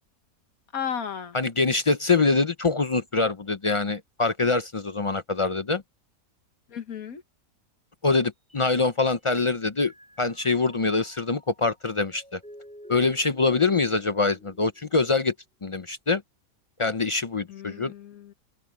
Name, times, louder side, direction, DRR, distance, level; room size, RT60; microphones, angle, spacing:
voice 1, 0.7-1.4 6.7-7.2 17.5-18.3, left 8 dB, 85° left, 1.8 m, -34 dB
voice 2, 1.3-5.8 8.0-9.9 10.2-12.4 12.9-15.3 15.6-16.2 16.8-17.9, left 3 dB, 40° left, 0.4 m, -24 dB
Mallet percussion, 9.2-9.4 9.8-15.2, equal, 5° left, 5.7 m, -51 dB
open air
omnidirectional pair, 1.5 m